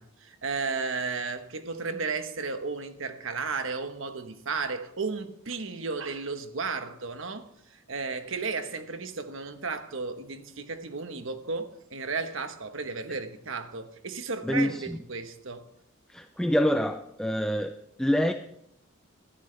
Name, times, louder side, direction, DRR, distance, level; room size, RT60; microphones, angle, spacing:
voice 1, 0.0-15.7, right 4 dB, 65° right, 1.2 m, -34 dB
voice 2, 14.4-15.0 16.1-18.3, equal, 5° left, 0.5 m, -26 dB
20.5 x 13.0 x 3.4 m
head